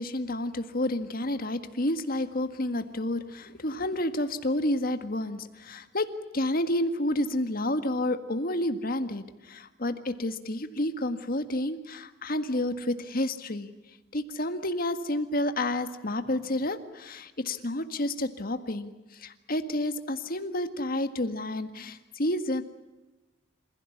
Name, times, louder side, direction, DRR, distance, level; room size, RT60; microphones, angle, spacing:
voice 1, 0.0-6.1 6.3-13.7 14.1-22.6, left 1 dB, 50° left, 9 dB, 1.8 m, -30 dB
28.0 x 16.0 x 9.9 m, 1.1 s
head